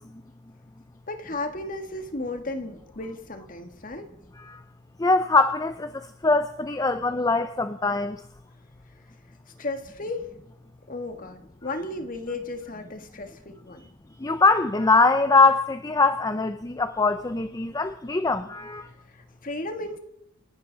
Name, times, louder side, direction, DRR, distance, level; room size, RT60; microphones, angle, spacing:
voice 1, 1.1-4.1 9.6-10.3 10.9-13.9 19.1-20.0, left 2 dB, 40° left, 7 dB, 1.6 m, -34 dB
voice 2, 5.0-8.2 14.2-18.9, left 3 dB, 15° left, 10 dB, 0.5 m, -22 dB
28.0 x 11.5 x 4.0 m, 0.82 s
head